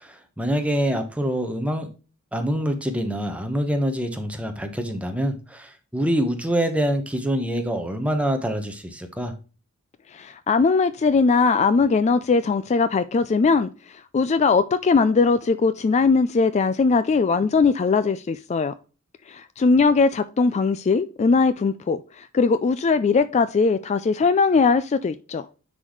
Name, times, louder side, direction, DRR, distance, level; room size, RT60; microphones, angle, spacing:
voice 1, 0.0-1.9 2.3-9.3, equal, 5° right, 1.1 m, -25 dB
voice 2, 10.1-18.7 19.3-25.4, left 4 dB, 30° left, 0.3 m, -20 dB
9.9 x 4.1 x 3.1 m
head